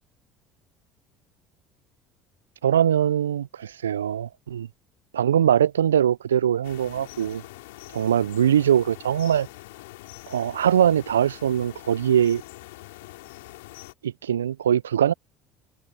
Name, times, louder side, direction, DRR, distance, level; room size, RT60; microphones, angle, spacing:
voice 1, 2.6-4.7 5.1-7.4 7.9-9.5 10.3-12.4 14.0-15.1, right 9 dB, 85° right, 0.4 m, -22 dB
sound 1, 6.6-13.9, left 21 dB, 75° left, 5.0 m, -44 dB
hypercardioid pair, 60°, 0 cm